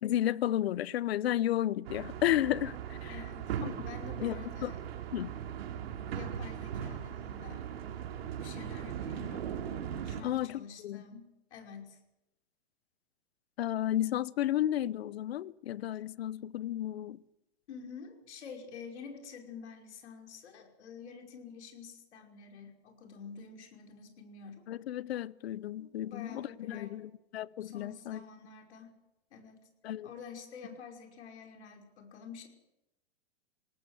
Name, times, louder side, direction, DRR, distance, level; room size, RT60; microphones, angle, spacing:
voice 1, 0.0-3.2 3.6-3.7 4.2-4.7 5.1-5.4 10.2-11.0 13.6-17.2 24.7-28.2 29.8-30.1, left 12 dB, 65° left, 0.9 m, -33 dB
sound 1, 1.8-10.2, right 9 dB, 65° right, 3.0 m, -39 dB
voice 2, 3.1-4.8 6.1-7.7 8.1-9.4 10.0-12.0 17.7-24.7 25.8-27.1 27.6-29.0 29.3-29.7 30.0-32.5, left 6 dB, 85° left, 5.5 m, -48 dB
21.0 x 18.0 x 8.0 m
supercardioid pair, 175°, 33 cm